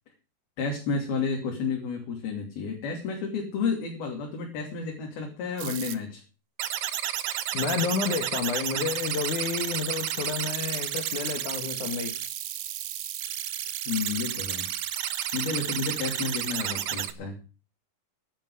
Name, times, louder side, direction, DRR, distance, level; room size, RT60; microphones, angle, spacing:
voice 1, 0.6-6.2 13.9-14.7 15.3-17.4, left 5 dB, 85° left, 4.9 m, -31 dB
sound 1, 5.6-6.0 6.6-17.1, right 11 dB, 65° right, 2.1 m, -31 dB
voice 2, 7.5-12.1, left 6 dB, 60° left, 3.1 m, -30 dB
15.5 x 12.0 x 4.9 m
omnidirectional pair, 4.2 m